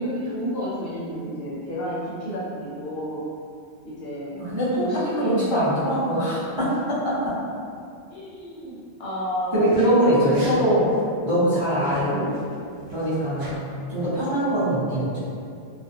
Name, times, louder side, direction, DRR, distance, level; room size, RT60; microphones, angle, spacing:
voice 1, 0.0-3.2 3.8-5.9 6.4-6.7 8.1-9.9 10.3-10.6, equal, 65° left, -7 dB, 0.7 m, -31 dB
voice 2, 4.4-4.9 5.2-6.7 7.0-7.1 9.5-10.8 11.2-12.3 12.9-13.6 13.9-15.1, equal, 25° right, -14 dB, 0.7 m, -22 dB
sound 1, 9.5-9.9 10.2-10.6 10.9-11.0 11.7-13.6, right 1 dB, 90° right, 0.9 m, -43 dB
2.4 x 2.1 x 2.6 m, 2.4 s
omnidirectional pair, 1.2 m